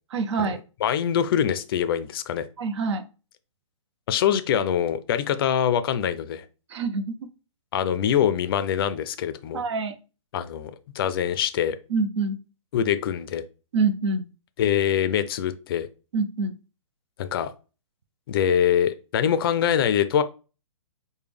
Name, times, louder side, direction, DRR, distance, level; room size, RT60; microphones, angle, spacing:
voice 1, 0.1-0.6 2.6-3.0 6.7-7.3 9.5-10.0 11.9-12.4 13.7-14.3 16.1-16.6, right 4 dB, 55° right, 9 dB, 0.6 m, -26 dB
voice 2, 0.8-2.4 4.1-6.4 7.7-9.6 10.3-11.8 12.7-13.4 14.6-15.9 17.2-17.5 18.3-20.2, left 9 dB, 45° left, 12 dB, 0.4 m, -24 dB
4.8 x 2.2 x 3.3 m, 0.33 s
hypercardioid pair, 135°, 17 cm